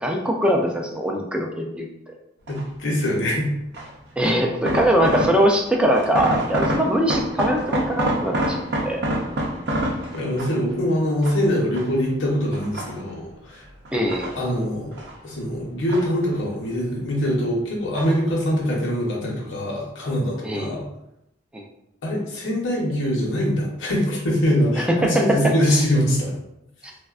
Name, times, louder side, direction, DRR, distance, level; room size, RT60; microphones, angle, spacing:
voice 1, 0.0-1.9 4.2-9.0 13.9-14.4 20.4-20.8 21.5-21.7 25.0-25.2, equal, 5° right, 1 dB, 0.3 m, -22 dB
voice 2, 2.5-3.5 10.1-13.7 14.3-14.9 15.2-20.8 22.0-26.4, equal, 75° left, -3 dB, 0.7 m, -23 dB
sound 1, 2.5-2.9 3.7-5.7 5.9-10.7 11.2-12.1 12.5-13.4 13.9-15.2 15.5-16.6 16.9-17.5 17.9-18.3 18.6-18.7, right 1 dB, 60° right, 0.6 m, -27 dB
3.4 x 2.1 x 2.4 m, 0.83 s
head